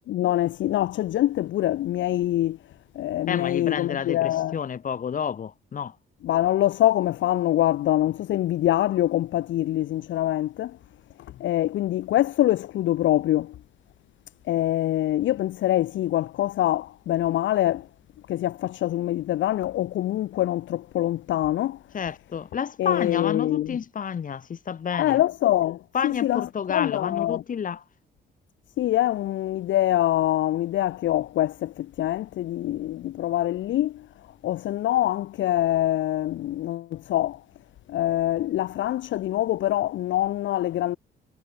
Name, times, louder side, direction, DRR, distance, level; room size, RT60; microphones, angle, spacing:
voice 1, 0.1-2.6 2.9-4.6 6.2-10.8 11.4-13.5 14.5-17.9 18.3-21.8 22.8-23.8 24.9-27.4 28.8-34.1 34.4-37.4 37.9-41.0, left 13 dB, 70° left, 0.8 m, -24 dB
voice 2, 3.3-5.9 21.9-25.2 25.9-27.8, left 7 dB, 40° left, 1.2 m, -30 dB
cardioid pair, 90°, 20 cm